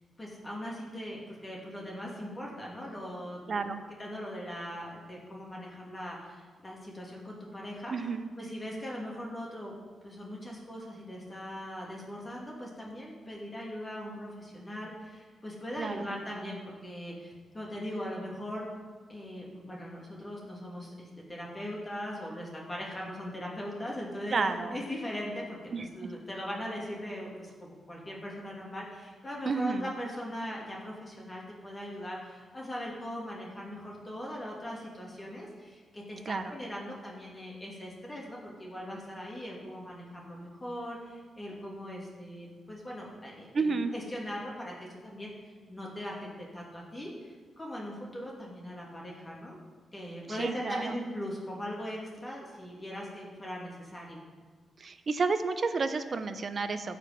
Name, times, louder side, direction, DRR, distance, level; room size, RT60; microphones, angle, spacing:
voice 1, 0.2-3.6 4.0-8.1 8.4-9.7 10.0-18.7 19.1-49.6 49.9-54.2, equal, 20° left, -3 dB, 2.6 m, -40 dB
voice 2, 3.5-3.8 7.9-8.3 15.8-16.1 24.3-24.8 25.7-26.1 29.5-29.9 36.3-36.5 43.5-43.9 50.3-51.0 54.8-57.0, right 4 dB, 45° right, 9 dB, 0.8 m, -31 dB
15.5 x 5.2 x 5.9 m, 1.5 s
cardioid pair, 110°, 0 cm